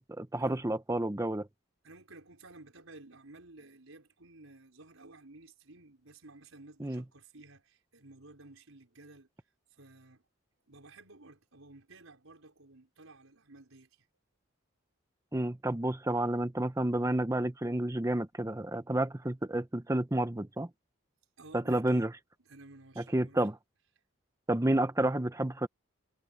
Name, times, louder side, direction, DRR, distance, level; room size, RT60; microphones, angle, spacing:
voice 1, 0.2-1.5 6.8-7.0 15.3-20.7 21.5-22.1 23.1-23.6 24.5-25.7, right 1 dB, 15° right, 0.7 m, -30 dB
voice 2, 1.8-9.3 9.7-10.2 10.7-14.1 21.4-22.1 22.4-23.4, right 2 dB, 90° right, 5.1 m, -54 dB
head